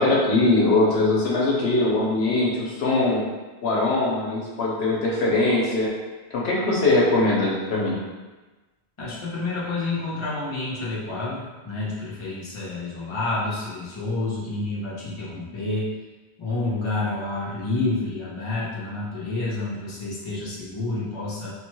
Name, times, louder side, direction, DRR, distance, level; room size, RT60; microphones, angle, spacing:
voice 1, 0.0-3.2 3.6-5.9 6.3-8.0, left 2 dB, 80° left, -4 dB, 0.9 m, -21 dB
voice 2, 9.0-15.9 16.4-21.5, left 2 dB, 30° left, -7 dB, 0.8 m, -29 dB
3.2 x 2.2 x 3.0 m, 1.2 s
omnidirectional pair, 1.1 m